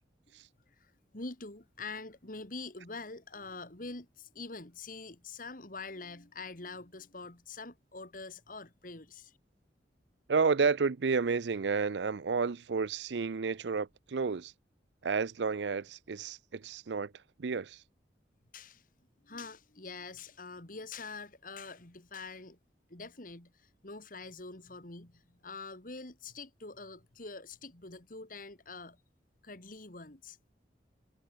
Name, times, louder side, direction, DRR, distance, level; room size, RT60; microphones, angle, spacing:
voice 1, 0.7-9.4 18.5-18.8 19.2-22.6 22.9-29.0 29.4-30.4, left 3 dB, 50° left, 2.5 m, -45 dB
voice 2, 10.3-14.5 15.0-17.1 17.4-17.8, right 5 dB, 80° right, 0.6 m, -31 dB
head